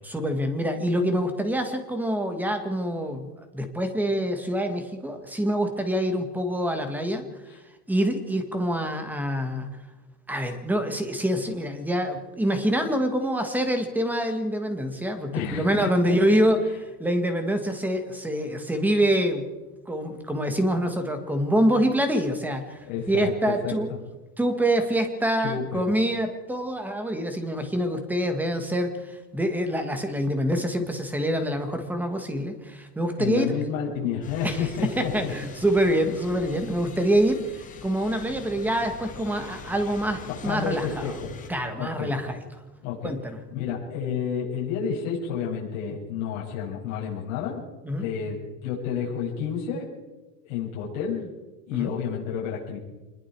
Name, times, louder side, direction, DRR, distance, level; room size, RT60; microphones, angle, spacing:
voice 1, 0.0-7.2 7.9-9.7 10.3-16.6 17.0-19.5 19.9-23.9 24.4-33.5 34.4-41.0 41.5-42.4 43.0-43.4 47.9-48.0 51.7-51.9, equal, 5° right, 6 dB, 1.7 m, -26 dB
voice 2, 15.3-16.4 22.8-23.7 25.4-25.8 33.2-35.3 40.4-41.3 41.8-42.1 42.8-43.1 43.5-47.6 48.0-48.4 48.6-49.9 50.5-51.3 51.7-52.8, left 7 dB, 50° left, -4 dB, 7.4 m, -30 dB
sound 1, 34.2-41.5, left 5 dB, 15° left, 2.1 m, -42 dB
25.5 x 21.5 x 4.8 m, 1.2 s
supercardioid pair, 170°, 47 cm